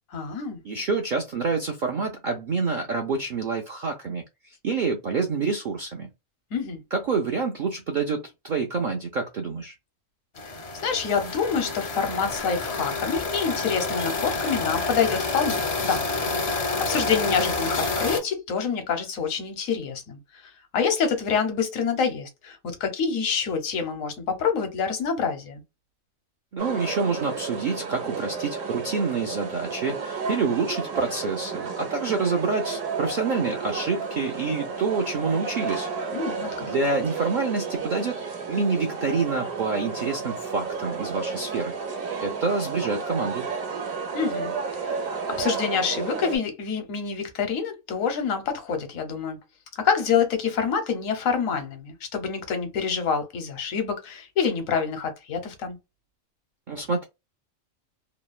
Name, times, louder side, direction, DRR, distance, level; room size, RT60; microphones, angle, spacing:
voice 1, 0.1-0.6 6.5-6.8 10.4-10.6 10.8-25.6 36.1-36.7 44.1-49.4 49.8-55.8, left 6 dB, 85° left, 1.2 m, -27 dB
voice 2, 0.6-6.1 6.9-9.7 26.5-35.9 36.6-41.7 42.2-43.5 56.7-57.0, right 4 dB, 65° right, 0.4 m, -27 dB
sound 1, 10.4-18.2, left 3 dB, 45° left, 0.5 m, -28 dB
sound 2, 26.6-46.4, right 5 dB, 85° right, 1.2 m, -32 dB
3.1 x 2.0 x 2.3 m
omnidirectional pair, 1.4 m